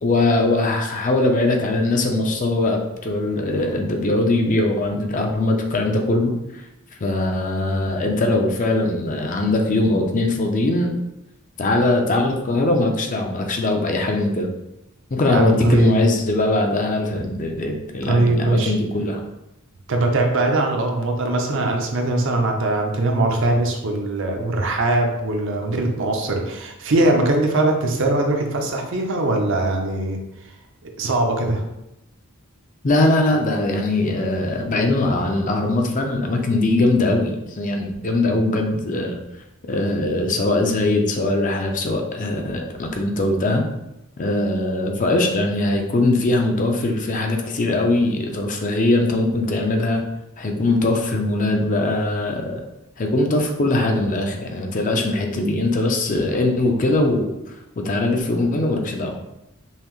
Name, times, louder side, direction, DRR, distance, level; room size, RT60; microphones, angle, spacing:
voice 1, 0.0-6.6 7.0-10.9 11.6-14.5 15.1-19.2 32.8-39.2 39.7-43.6 44.2-50.0 50.4-52.6 53.0-57.5 57.8-59.2, left 2 dB, 35° left, 3 dB, 0.5 m, -21 dB
voice 2, 15.3-16.0 18.1-18.8 19.9-30.2 31.0-31.6, right 2 dB, 60° right, 2 dB, 0.6 m, -21 dB
5.5 x 2.0 x 3.0 m, 0.90 s
head